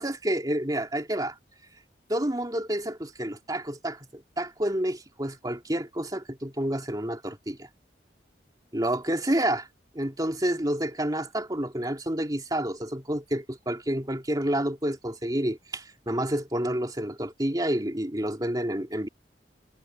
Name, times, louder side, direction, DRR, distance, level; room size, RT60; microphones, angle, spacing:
voice 1, 0.0-1.4 2.1-7.7 8.7-9.7 9.9-19.1, right 1 dB, 20° right, 2.9 m, -29 dB
head